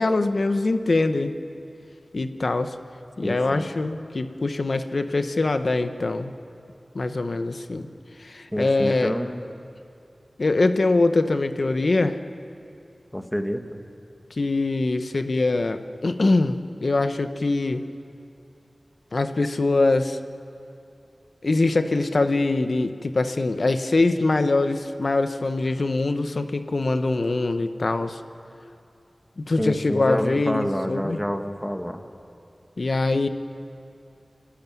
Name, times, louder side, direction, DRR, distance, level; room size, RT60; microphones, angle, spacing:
voice 1, 0.0-1.4 2.1-2.7 3.2-6.3 6.9-7.9 8.2-9.1 10.4-12.2 14.4-17.9 19.1-20.2 21.4-28.2 29.4-31.2 32.8-33.3, left 2 dB, 70° left, 9 dB, 1.1 m, -23 dB
voice 2, 3.2-3.7 8.5-9.4 13.1-13.8 29.6-32.0, equal, 5° left, 5 dB, 1.8 m, -28 dB
29.0 x 13.0 x 9.5 m, 2.6 s
wide cardioid pair, 50°, 0 cm